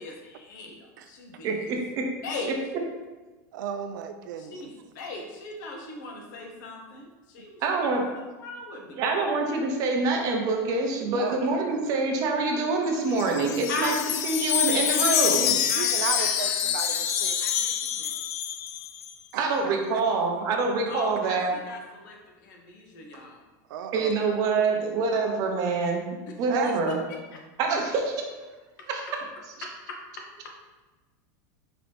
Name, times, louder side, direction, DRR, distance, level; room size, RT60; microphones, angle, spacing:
voice 1, 0.0-1.6 2.2-2.6 4.4-7.9 8.2-9.0 13.7-15.0 15.7-17.1 17.4-18.1 20.9-23.5 26.3-26.4 26.6-27.4 28.8-28.9 29.6-30.5, left 3 dB, 75° left, 2 dB, 0.9 m, -39 dB
voice 2, 1.4-2.1 7.6-8.1 9.0-14.0 14.2-15.6 19.4-21.5 23.9-26.1 26.4-27.0 27.6-28.2 28.9-29.0, right 3 dB, 35° right, 1 dB, 0.7 m, -26 dB
voice 3, 3.5-4.6 11.1-11.8 15.7-17.4 19.3-20.0 23.7-24.1 26.5-26.8, right 8 dB, 75° right, 8 dB, 0.4 m, -34 dB
Wind chime, 12.9-19.1, left 10 dB, 55° left, 0.4 m, -26 dB
5.0 x 2.8 x 3.4 m, 1.2 s
supercardioid pair, 170°, 10 cm